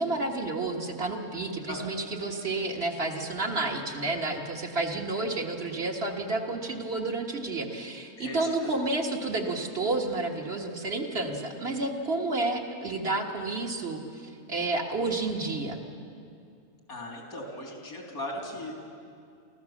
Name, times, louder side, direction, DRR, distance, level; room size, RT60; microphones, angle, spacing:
voice 1, 0.0-15.8, right 2 dB, 45° right, 1 dB, 1.8 m, -30 dB
voice 2, 1.7-2.0 8.2-8.7 16.9-18.7, left 1 dB, 90° left, 0 dB, 3.7 m, -38 dB
24.5 x 15.0 x 7.2 m, 2.4 s
omnidirectional pair, 1.5 m